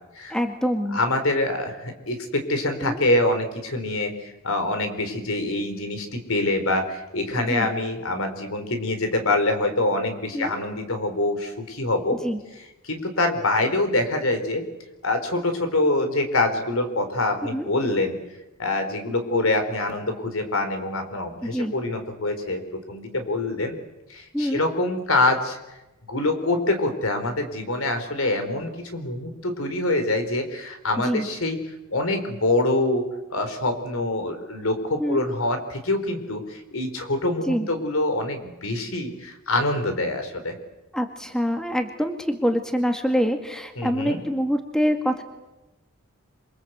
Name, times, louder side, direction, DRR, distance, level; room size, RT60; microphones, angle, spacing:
voice 1, 0.3-1.0 2.8-3.0 7.4-7.7 10.3-10.6 12.2-12.4 17.5-17.7 21.4-21.7 24.3-24.6 31.0-31.3 35.0-35.3 37.5-37.7 40.9-45.2, equal, 5° left, 5 dB, 2.0 m, -25 dB
voice 2, 0.9-12.2 12.8-14.6 15.0-18.2 18.6-23.7 24.1-25.6 26.1-31.6 31.9-40.6 43.8-44.2, left 2 dB, 70° left, 7 dB, 4.3 m, -25 dB
27.5 x 23.5 x 8.2 m, 1.0 s
head